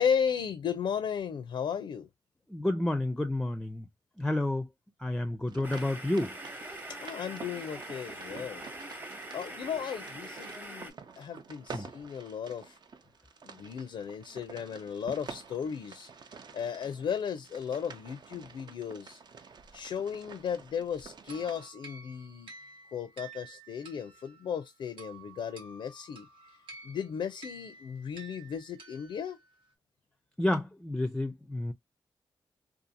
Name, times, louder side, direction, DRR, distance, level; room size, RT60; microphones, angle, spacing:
voice 1, 0.0-2.1 7.0-8.7 9.3-12.8 13.5-16.1 16.5-19.2 19.7-22.5 22.9-26.3 26.8-29.4, left 7 dB, 85° left, 0.4 m, -35 dB
voice 2, 2.5-3.9 4.2-4.7 5.0-6.4 11.7-11.9 30.4-31.7, left 1 dB, 5° left, 0.4 m, -30 dB
sound 1, 5.5-21.7, right 5 dB, 60° right, 0.5 m, -49 dB
sound 2, 5.6-10.9, right 1 dB, 20° right, 0.9 m, -43 dB
sound 3, 21.3-29.6, right 4 dB, 85° right, 0.9 m, -51 dB
2.6 x 2.4 x 2.6 m
cardioid pair, 60°, 9 cm